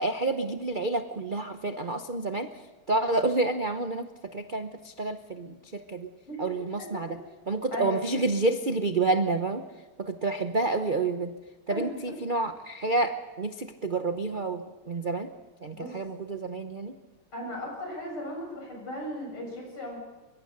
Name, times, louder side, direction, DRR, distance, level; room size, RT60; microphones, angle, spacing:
voice 1, 0.0-2.5 2.9-6.1 6.4-7.2 7.5-9.6 10.0-11.3 11.7-15.3 15.6-16.9, right 3 dB, 65° right, 8 dB, 0.5 m, -29 dB
voice 2, 7.7-8.1 11.7-12.0 15.7-15.9 17.3-20.0, left 1 dB, 85° left, 0 dB, 7.9 m, -36 dB
23.5 x 22.0 x 6.6 m, 1.2 s
omnidirectional pair, 2.3 m